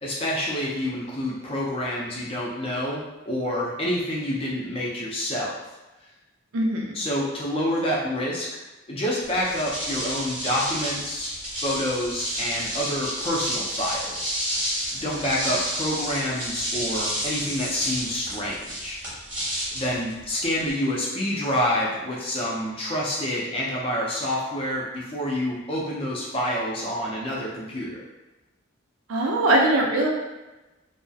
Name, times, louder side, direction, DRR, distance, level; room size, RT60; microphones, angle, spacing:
voice 1, 0.0-5.5 6.9-8.5 8.9-11.3 11.6-14.3 14.9-19.0 19.7-28.0, left 1 dB, 25° left, -4 dB, 0.4 m, -28 dB
voice 2, 6.5-7.0 29.1-30.1, right 1 dB, 85° right, -1 dB, 0.5 m, -21 dB
sound 1, 9.2-20.7, equal, 10° right, 0.7 m, -31 dB
2.3 x 2.0 x 2.6 m, 1.1 s
head